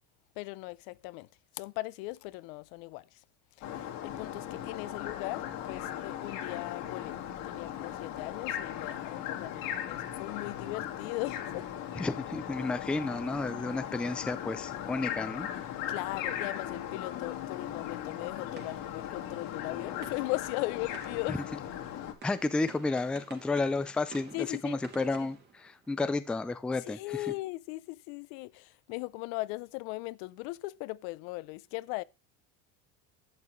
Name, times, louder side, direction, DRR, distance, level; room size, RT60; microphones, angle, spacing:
voice 1, 0.4-1.3 1.5-3.2 3.6-7.2 7.4-11.7 15.9-21.4 24.3-24.8 25.2-25.3 26.9-32.0, left 21 dB, 75° left, 0.7 m, -38 dB
sound 1, 3.6-22.1, left 10 dB, 55° left, 2.1 m, -38 dB
voice 2, 12.0-15.5 22.2-27.3, left 3 dB, 5° left, 0.4 m, -32 dB
sound 2, 17.2-26.3, right 5 dB, 25° right, 2.4 m, -53 dB
11.0 x 8.1 x 3.1 m
cardioid pair, 145°, 39 cm